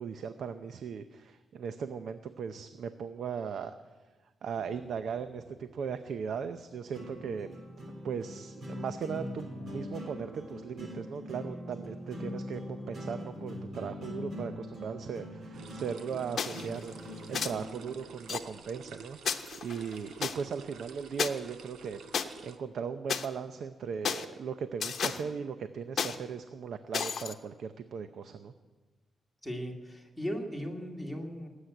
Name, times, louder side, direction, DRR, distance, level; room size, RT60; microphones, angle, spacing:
voice 1, 0.0-3.7 4.4-7.5 8.0-28.5, right 6 dB, 65° right, 10 dB, 0.7 m, -38 dB
sound 1, 4.6-18.5, left 1 dB, 45° right, 3.6 m, -43 dB
sound 2, 15.5-22.6, right 5 dB, 85° right, 1.0 m, -50 dB
sound 3, 16.4-16.7 17.3-17.5 18.3-18.4 19.2-20.3 21.2-21.3 22.1-22.2 23.1-23.3 24.0-24.2 24.8-25.2 26.0-26.1 26.9-27.3, left 7 dB, 55° left, 0.9 m, -32 dB
voice 2, 29.4-31.5, equal, ahead, 2 dB, 2.3 m, -37 dB
19.0 x 8.2 x 9.2 m, 1.3 s
wide cardioid pair, 145°, 0 cm